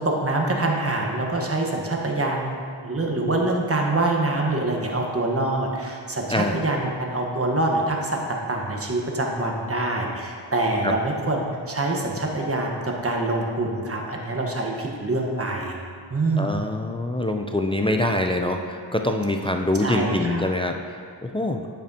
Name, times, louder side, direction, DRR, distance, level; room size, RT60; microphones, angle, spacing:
voice 1, 0.0-2.5 2.8-15.8 16.1-16.6 19.8-20.4, right 2 dB, 30° right, 0 dB, 1.2 m, -25 dB
voice 2, 16.4-21.6, left 1 dB, 15° left, 4 dB, 0.3 m, -25 dB
8.5 x 6.0 x 2.8 m, 2.2 s
cardioid pair, 50°, 46 cm